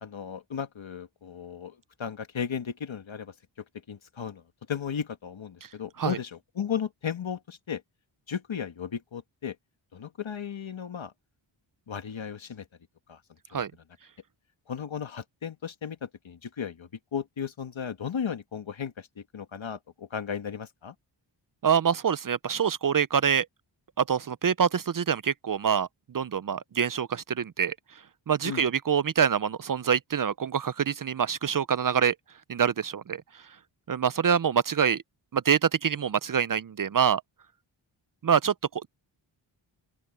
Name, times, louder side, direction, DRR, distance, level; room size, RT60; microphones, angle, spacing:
voice 1, 0.0-3.3 3.9-4.4 4.7-7.8 8.3-9.5 9.9-11.1 11.9-12.6 13.1-13.2 13.5-13.6 14.7-20.9 28.4-28.7, left 7 dB, 75° left, 1.7 m, -35 dB
voice 2, 21.6-23.5 24.0-27.7 28.3-32.1 32.5-33.2 33.9-35.0 35.3-37.2 38.2-38.9, right 7 dB, 45° right, 0.5 m, -25 dB
open air
wide cardioid pair, 90°, 47 cm